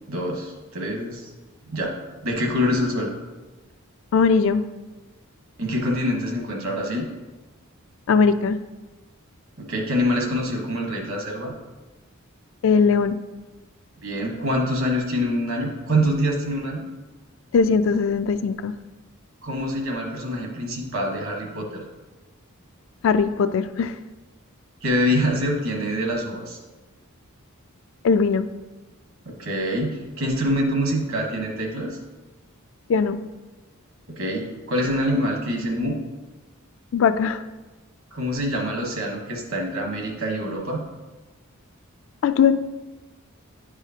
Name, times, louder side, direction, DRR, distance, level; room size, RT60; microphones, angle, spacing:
voice 1, 0.1-1.3 1.7-1.9 2.2-3.1 5.6-7.1 9.6-11.5 14.0-16.9 19.4-21.8 24.8-26.6 29.2-32.0 34.1-36.0 38.1-40.9, equal, 65° right, 1 dB, 1.3 m, -25 dB
voice 2, 4.1-4.6 8.1-8.6 12.6-13.2 17.5-18.7 23.0-24.0 28.0-28.5 32.9-33.2 36.9-37.4 42.2-42.6, left 5 dB, 60° left, 10 dB, 0.3 m, -19 dB
9.8 x 4.9 x 2.8 m, 1.2 s
head